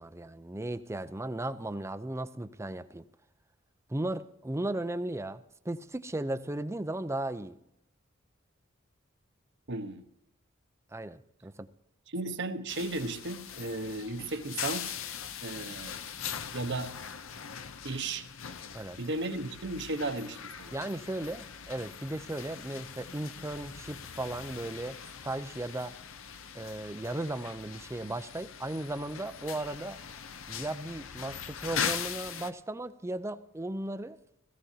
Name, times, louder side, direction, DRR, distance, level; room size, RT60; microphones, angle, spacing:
voice 1, 0.0-3.0 3.9-7.6 10.9-11.7 18.7-19.0 20.7-25.0 25.2-26.0 26.5-30.0 30.5-34.2, right 1 dB, 15° right, 0.5 m, -36 dB
voice 2, 9.7-10.0 12.1-14.9 15.4-16.0 16.5-16.9 17.8-18.3 19.0-20.7, right 2 dB, 60° right, 1.1 m, -35 dB
sound 1, 12.7-32.5, left 8 dB, 70° left, 0.7 m, -41 dB
17.0 x 16.0 x 2.8 m
head